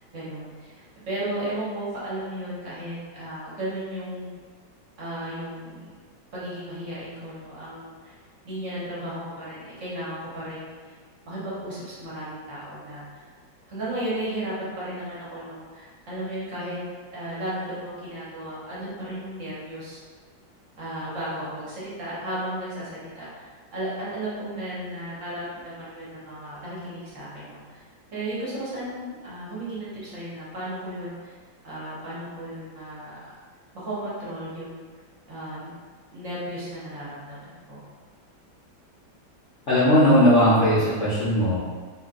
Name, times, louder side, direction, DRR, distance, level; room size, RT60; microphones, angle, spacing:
voice 1, 0.1-4.3 5.0-6.0 6.3-8.1 8.4-10.9 11.3-13.2 13.7-16.8 17.1-20.0 20.8-23.5 23.7-27.8 28.1-31.3 31.6-33.2 33.7-34.8 35.3-35.7 36.1-37.8, right 1 dB, 45° right, -9 dB, 1.1 m, -34 dB
voice 2, 39.7-41.6, equal, 65° left, -11 dB, 0.7 m, -18 dB
3.2 x 2.7 x 2.4 m, 1.5 s
omnidirectional pair, 2.1 m